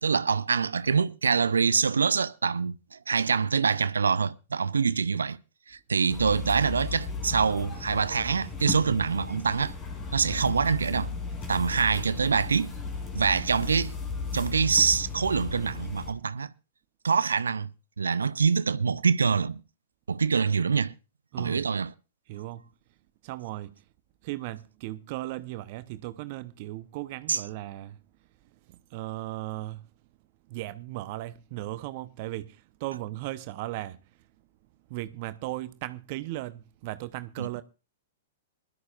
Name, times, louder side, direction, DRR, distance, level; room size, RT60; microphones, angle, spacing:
voice 1, 0.0-5.4 5.7-9.7 10.1-11.1 11.5-12.7 13.1-13.9 14.3-16.5 17.0-17.7 18.0-19.6 20.1-20.9 21.4-21.9 27.3-27.4 37.4-37.5, right 5 dB, 80° right, 0.5 m, -25 dB
sound 1, 6.1-16.1, left 4 dB, 25° left, 3.0 m, -35 dB
voice 2, 21.3-21.7 22.3-22.6 23.2-23.8 24.2-28.0 28.7-29.9 30.5-34.0 34.9-37.6, right 16 dB, 45° right, 0.7 m, -37 dB
21.5 x 12.5 x 2.4 m
figure-of-eight pair, 110°, 0 cm